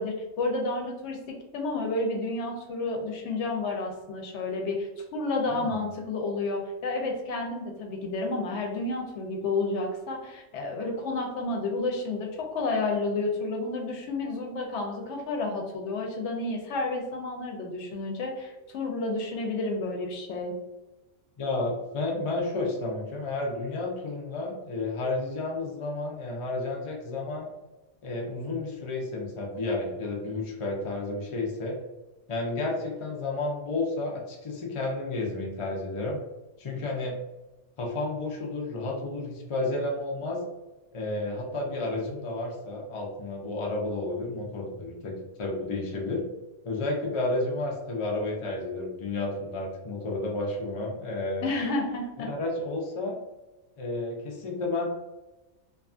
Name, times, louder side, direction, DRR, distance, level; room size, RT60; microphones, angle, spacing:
voice 1, 0.0-20.5 51.4-52.3, left 2 dB, 80° left, 2 dB, 0.9 m, -31 dB
voice 2, 5.5-5.8 21.4-27.5 28.0-31.8 32.3-36.2 36.6-37.2 37.8-40.4 40.9-45.1 45.4-46.2 46.6-51.5 52.2-53.2 53.8-54.8, left 2 dB, 45° left, -1 dB, 0.4 m, -31 dB
2.8 x 2.3 x 2.4 m, 1.0 s
omnidirectional pair, 1.2 m